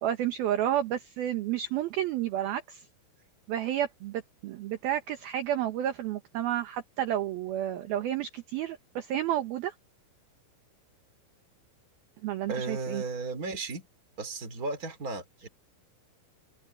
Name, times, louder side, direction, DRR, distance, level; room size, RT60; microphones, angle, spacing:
voice 1, 0.0-2.8 3.5-9.7 12.2-13.0, right 11 dB, 70° right, 2.3 m, -31 dB
voice 2, 12.5-13.9 14.2-15.5, right 3 dB, 20° right, 2.9 m, -35 dB
open air
omnidirectional pair, 6.0 m